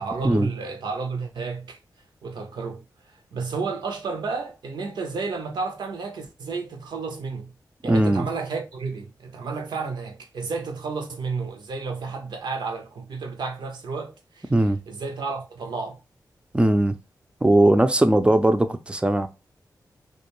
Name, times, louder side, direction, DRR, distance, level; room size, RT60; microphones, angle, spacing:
voice 1, 0.0-1.8 2.2-7.5 7.8-14.5 14.9-16.0, right 4 dB, 80° right, 0.6 m, -32 dB
voice 2, 7.9-8.3 14.5-14.8 16.5-17.0 17.4-19.3, right 1 dB, 15° right, 0.4 m, -19 dB
2.4 x 2.2 x 2.9 m
cardioid pair, 45°, 8 cm